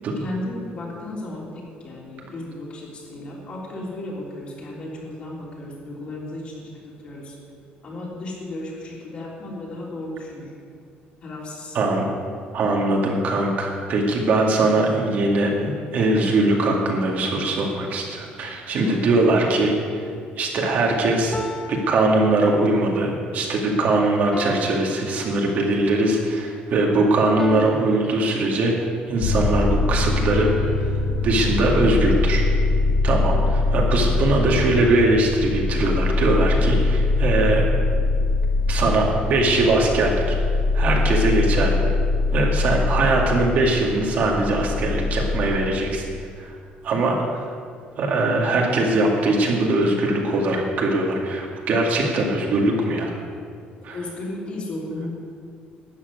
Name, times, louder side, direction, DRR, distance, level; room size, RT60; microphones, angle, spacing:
voice 1, 0.2-7.4 7.8-10.5 11.2-11.8 18.7-19.0 34.0-34.3 53.9-55.1, left 1 dB, 40° left, -4 dB, 3.5 m, -34 dB
voice 2, 11.7-12.0 12.5-19.8 20.4-21.4 21.7-28.7 29.1-30.5 30.8-30.9 31.2-32.4 33.0-37.6 38.7-40.4 40.7-41.8 42.3-46.0 46.4-46.6 46.8-47.2 48.0-53.1 53.8-54.0, right 2 dB, 50° right, -1 dB, 2.1 m, -21 dB
sound 1, 19.9-20.2 21.3-23.0 24.3-26.0 27.4-29.0 30.3-32.7, left 1 dB, 15° left, 0.7 m, -36 dB
sound 2, 29.2-45.5, left 3 dB, 65° left, 2.2 m, -22 dB
12.5 x 7.4 x 9.5 m, 2.2 s
cardioid pair, 170°, 3 cm